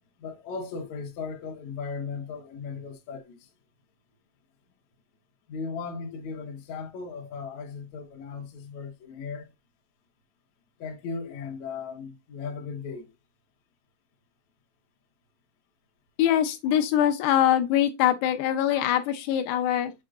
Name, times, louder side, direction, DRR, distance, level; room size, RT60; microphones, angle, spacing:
voice 1, 0.2-3.5 5.5-9.5 10.8-13.1, left 5 dB, 60° left, 2.0 m, -37 dB
voice 2, 16.2-19.9, left 11 dB, 80° left, 2.7 m, -23 dB
7.9 x 3.7 x 3.7 m
omnidirectional pair, 4.8 m